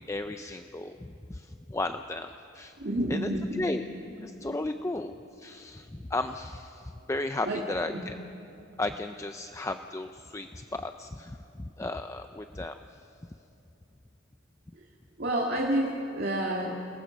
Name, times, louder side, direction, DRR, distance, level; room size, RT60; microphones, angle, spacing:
voice 1, 0.0-2.8 3.1-3.9 4.2-8.2 8.8-12.8, left 2 dB, 15° left, 8 dB, 0.4 m, -35 dB
voice 2, 2.8-3.6 7.5-7.6 7.9-8.1 15.2-16.7, right 1 dB, 50° right, -1 dB, 2.1 m, -29 dB
29.5 x 20.0 x 5.3 m, 2.8 s
head